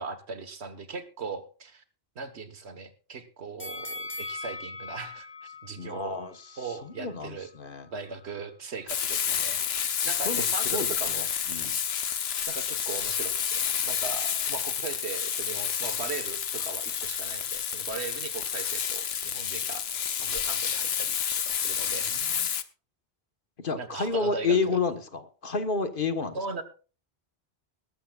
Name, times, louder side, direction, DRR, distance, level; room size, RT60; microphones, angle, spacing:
voice 1, 0.0-1.8 2.1-6.2 6.6-7.5 7.9-9.6 10.0-11.3 12.5-19.8 20.2-21.2 21.5-22.1 23.7-24.6 26.3-26.6, right 5 dB, 85° right, 10 dB, 1.6 m, -38 dB
sound 1, 3.6-6.7 7.1-7.2, left 3 dB, 10° left, 2.2 m, -40 dB
voice 2, 5.8-6.3 6.8-7.9 10.2-10.9 11.5-11.8 21.9-22.2 23.6-26.4, left 4 dB, 55° left, 9 dB, 1.4 m, -30 dB
Frying (food), 8.9-22.6, left 8 dB, 75° left, 1.1 m, -29 dB
20.0 x 12.5 x 2.4 m, 0.36 s
omnidirectional pair, 1.1 m